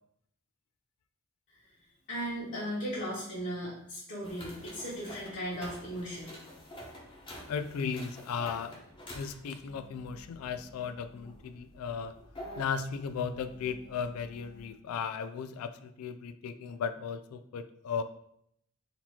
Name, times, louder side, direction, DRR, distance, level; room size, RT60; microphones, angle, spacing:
voice 1, 2.1-6.3, equal, 55° left, -10 dB, 1.5 m, -37 dB
sound 1, 4.2-14.7, left 1 dB, 25° left, 1.0 m, -49 dB
voice 2, 7.5-8.8 9.1-12.1 12.6-18.0, left 6 dB, 75° left, 9 dB, 0.3 m, -36 dB
4.1 x 2.8 x 4.3 m, 0.72 s
head